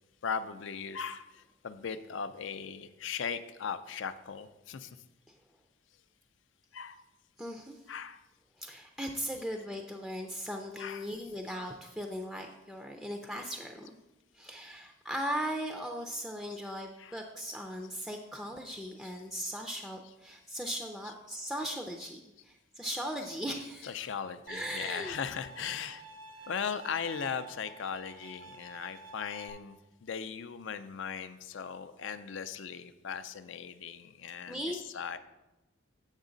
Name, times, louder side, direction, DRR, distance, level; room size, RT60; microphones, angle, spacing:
voice 1, 0.2-5.0 6.7-7.0 7.9-8.2 10.8-11.1 16.5-16.6 17.0-17.2 19.0-19.1 21.1-21.2 22.0-22.1 23.8-26.0 26.5-35.2, left 6 dB, 65° left, 11 dB, 0.4 m, -38 dB
voice 2, 7.4-7.8 8.6-14.0 14.3-24.1 24.5-25.1 25.6-25.8 26.4-26.5 34.5-34.8, equal, ahead, 2 dB, 0.4 m, -38 dB
Bowed string instrument, 24.5-29.5, right 4 dB, 70° right, 0.8 m, -50 dB
8.1 x 6.3 x 3.9 m, 1.0 s
head